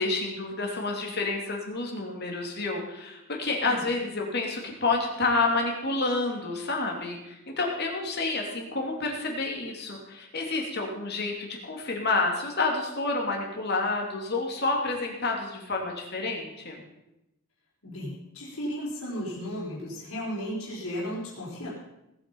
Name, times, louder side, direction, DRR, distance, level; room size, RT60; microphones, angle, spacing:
voice 1, 0.0-16.8, left 3 dB, 50° left, 1 dB, 3.0 m, -29 dB
voice 2, 17.8-21.7, equal, 75° left, -5 dB, 4.6 m, -35 dB
18.5 x 8.7 x 5.6 m, 0.90 s
head